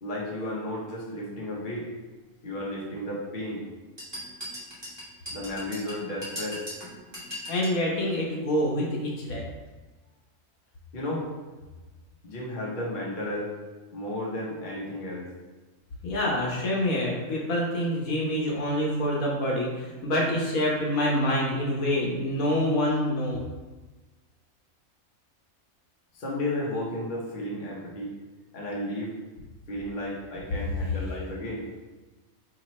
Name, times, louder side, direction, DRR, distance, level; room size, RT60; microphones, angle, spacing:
voice 1, 0.0-1.9 2.4-3.6 5.3-6.6 10.9-11.3 12.2-13.5 13.9-15.3 26.1-28.1 28.5-29.1 29.7-31.7, left 1 dB, 40° left, -3 dB, 0.9 m, -33 dB
sound 1, 4.0-7.8, equal, 20° right, 1.1 m, -39 dB
voice 2, 7.5-9.4 16.0-23.4, left 1 dB, 80° left, -3 dB, 1.4 m, -26 dB
4.9 x 2.9 x 3.0 m, 1.2 s
omnidirectional pair, 1.4 m